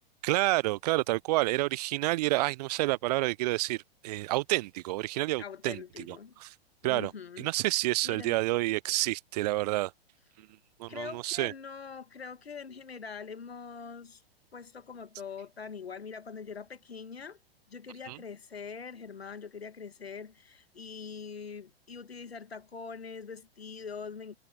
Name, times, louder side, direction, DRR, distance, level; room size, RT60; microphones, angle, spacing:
voice 1, 0.2-6.2 6.8-7.1 7.4-9.9 10.4-10.5 10.8-11.5 18.1-18.2, right 19 dB, 40° right, 0.6 m, -29 dB
voice 2, 5.4-6.3 6.8-7.5 8.0-8.4 10.9-14.2 14.5-17.4 17.7-24.4, left 6 dB, 80° left, 2.1 m, -43 dB
figure-of-eight pair, 105°, 31 cm